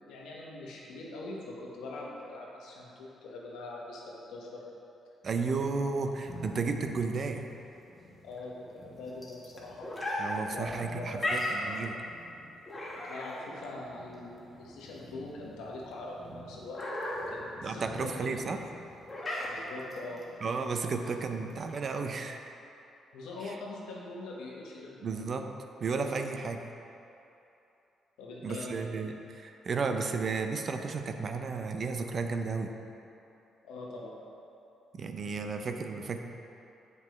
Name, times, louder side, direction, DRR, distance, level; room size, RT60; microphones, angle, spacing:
voice 1, 0.0-4.6 8.2-9.9 10.5-11.3 13.0-16.8 17.1-18.5 19.5-20.2 23.1-25.2 28.2-29.0 33.6-34.1, left 2 dB, 90° left, -3 dB, 1.1 m, -43 dB
voice 2, 5.2-7.5 10.2-12.0 17.6-18.6 19.2-19.5 20.4-22.6 23.4-23.6 25.0-25.5 25.8-26.7 28.4-32.7 34.9-36.2, right 4 dB, 50° right, 6 dB, 0.4 m, -33 dB
sound 1, 6.1-22.1, left 1 dB, 20° left, 1.3 m, -39 dB
7.4 x 5.2 x 3.1 m, 2.9 s
cardioid pair, 90°, 0 cm